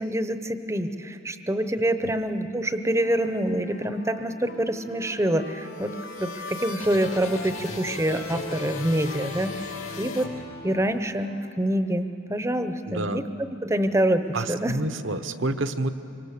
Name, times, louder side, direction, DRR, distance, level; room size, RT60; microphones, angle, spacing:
voice 1, 0.0-5.9 6.2-9.5 10.0-10.3 10.6-13.2 13.6-14.2 14.5-14.7, right 1 dB, 15° right, 9 dB, 0.8 m, -26 dB
Wind instrument woodwind instrument, 2.8-7.2 7.9-11.6, equal, 55° left, 2.1 m, -44 dB
sound 1, 5.3-10.9, left 3 dB, 85° left, 2.9 m, -37 dB
voice 2, 12.9-13.2 14.3-15.9, right 2 dB, 60° right, 10 dB, 0.9 m, -28 dB
25.0 x 24.5 x 6.7 m, 2.7 s
head